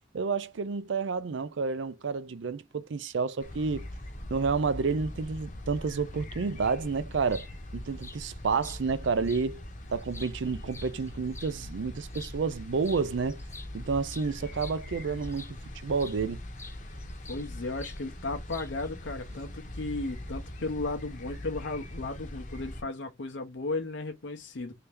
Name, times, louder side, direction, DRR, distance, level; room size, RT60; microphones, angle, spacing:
voice 1, 0.1-3.9 4.3-7.5 7.7-9.6 9.9-13.4 13.7-15.6 15.8-16.4, right 4 dB, 85° right, 0.5 m, -30 dB
sound 1, 3.4-22.8, left 1 dB, 45° left, 0.8 m, -42 dB
sound 2, 7.3-7.5 8.0-8.2 8.6-8.8 9.2-9.4 9.9-11.5 12.1-12.3 12.8-13.0 13.3-15.6 16.0-16.2 16.6-17.5 17.8-18.0 18.5-18.9, left 3 dB, 15° left, 0.5 m, -47 dB
voice 2, 17.3-24.7, left 2 dB, 80° left, 0.7 m, -35 dB
3.4 x 2.8 x 3.3 m
head